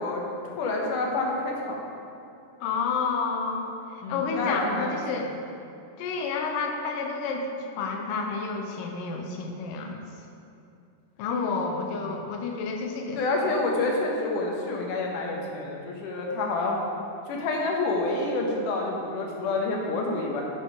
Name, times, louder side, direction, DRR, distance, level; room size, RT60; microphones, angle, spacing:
voice 1, 0.0-1.9 4.0-5.2 11.6-11.7 13.2-16.8 17.3-20.4, left 2 dB, 75° left, -1 dB, 2.5 m, -28 dB
voice 2, 2.6-3.7 4.1-5.3 6.0-7.4 7.8-10.0 11.2-13.5, left 4 dB, 90° left, 2 dB, 2.4 m, -30 dB
9.9 x 4.4 x 4.8 m, 2.6 s
omnidirectional pair, 3.9 m